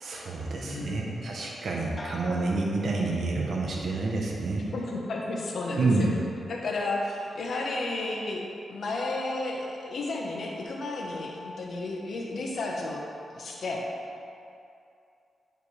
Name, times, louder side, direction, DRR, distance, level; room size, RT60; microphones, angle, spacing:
voice 1, 0.0-4.6 5.8-6.1, right 3 dB, 65° right, -2 dB, 0.9 m, -28 dB
voice 2, 0.6-1.3 4.7-6.1 6.5-13.0 13.3-13.9, left 2 dB, 65° left, -1 dB, 1.1 m, -32 dB
sound 1, 2.0-3.7 4.1-4.7, equal, 40° left, 1.0 m, -44 dB
9.1 x 5.0 x 3.3 m, 2.6 s
cardioid pair, 85°, 0 cm